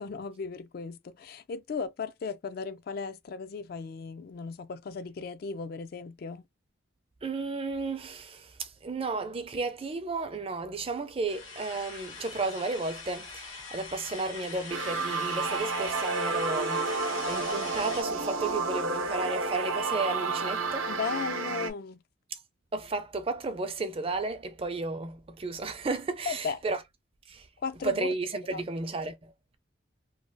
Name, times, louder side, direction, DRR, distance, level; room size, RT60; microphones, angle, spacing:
voice 1, 0.0-6.4 20.9-22.0 26.3-26.6 27.6-28.1 28.5-28.6, left 5 dB, 50° left, 0.3 m, -36 dB
voice 2, 7.2-20.9 22.7-26.8 27.3-27.5 27.8-29.3, right 3 dB, 30° right, 0.4 m, -33 dB
sound 1, 11.3-18.0, left 4 dB, 85° left, 1.4 m, -42 dB
sound 2, 14.7-21.7, right 4 dB, 90° right, 0.7 m, -31 dB
3.1 x 2.3 x 2.6 m
head